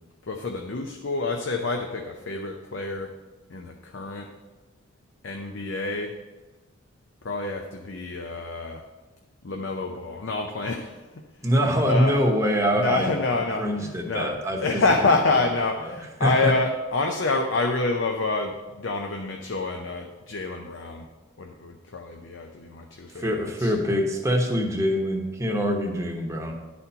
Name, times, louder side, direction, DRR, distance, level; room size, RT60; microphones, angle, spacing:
voice 1, 0.3-3.1 3.5-4.3 5.2-6.1 7.2-8.8 9.4-10.9 11.8-12.2 12.8-14.3 14.6-21.0 21.4-23.7, left 3 dB, 70° left, 3 dB, 0.6 m, -27 dB
voice 2, 11.4-15.1 15.8-16.0 16.2-16.6 23.2-26.5, equal, 15° right, 2 dB, 0.9 m, -24 dB
10.5 x 4.3 x 5.6 m, 1.2 s
head